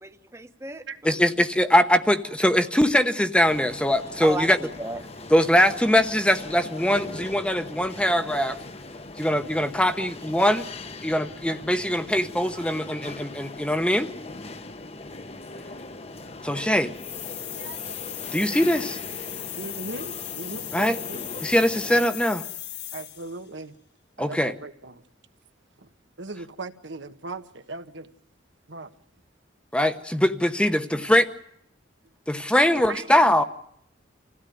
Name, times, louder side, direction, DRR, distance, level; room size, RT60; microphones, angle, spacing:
voice 1, 0.0-1.2 4.2-5.0, right 1 dB, 15° right, 1.1 m, -34 dB
voice 2, 1.0-4.6 5.3-8.6 9.2-10.7 11.0-14.1 16.4-16.9 18.3-19.0 20.7-21.0 21.4-22.4 24.2-24.5 29.7-31.3 32.3-33.4, equal, 5° left, 0.9 m, -22 dB
sound 1, 3.4-22.1, left 2 dB, 35° left, 1.0 m, -40 dB
sound 2, 16.9-23.4, left 13 dB, 60° left, 1.4 m, -37 dB
voice 3, 17.5-18.3 19.5-21.2 22.9-23.7 24.2-25.0 25.8-25.9 26.2-28.1 28.7-28.9 32.9-33.2, right 3 dB, 80° right, 1.4 m, -39 dB
26.0 x 16.0 x 9.3 m
head